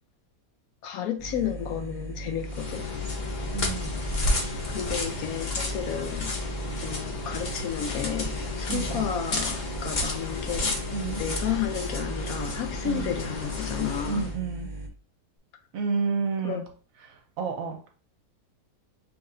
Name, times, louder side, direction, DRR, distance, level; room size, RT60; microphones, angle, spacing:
voice 1, 0.8-2.9 4.7-6.4 6.8-10.8 11.2-14.3 16.4-16.6, left 9 dB, 70° left, 0.9 m, -32 dB
sound 1, 1.2-14.9, right 2 dB, 25° right, 0.6 m, -38 dB
sound 2, 2.4-14.4, left 2 dB, 45° left, 0.6 m, -32 dB
voice 2, 3.5-4.0 8.7-9.1 10.9-11.2 12.8-13.1 14.1-14.7 15.7-16.6 17.0-17.8, right 5 dB, 65° right, 1.0 m, -30 dB
6.1 x 3.0 x 2.5 m
omnidirectional pair, 1.7 m